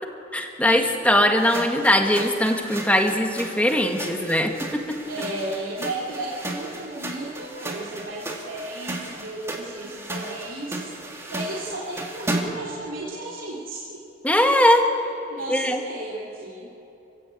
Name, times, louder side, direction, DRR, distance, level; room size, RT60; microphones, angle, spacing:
voice 1, 0.3-5.0 14.2-14.9 15.5-15.8, left 1 dB, 5° left, 3 dB, 1.7 m, -20 dB
sound 1, 1.4-12.7, right 1 dB, 15° right, 2.3 m, -35 dB
voice 2, 5.1-14.0 15.3-16.7, right 2 dB, 90° right, -5 dB, 3.2 m, -34 dB
29.0 x 15.5 x 8.5 m, 3.0 s
head